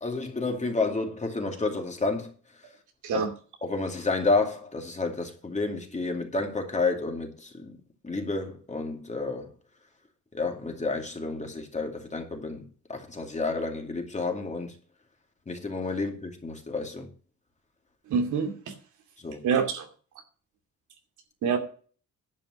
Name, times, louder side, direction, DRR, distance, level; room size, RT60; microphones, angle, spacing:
voice 1, 0.0-2.3 2.6-2.7 3.1-3.3 3.6-7.8 8.0-9.5 10.3-14.8 15.5-17.1 19.2-19.4, left 3 dB, 25° left, 2.6 m, -30 dB
voice 2, 18.1-18.5 19.4-19.9 21.4-21.6, right 6 dB, 75° right, 2.4 m, -25 dB
11.0 x 5.3 x 7.9 m
cardioid pair, 90°, 30 cm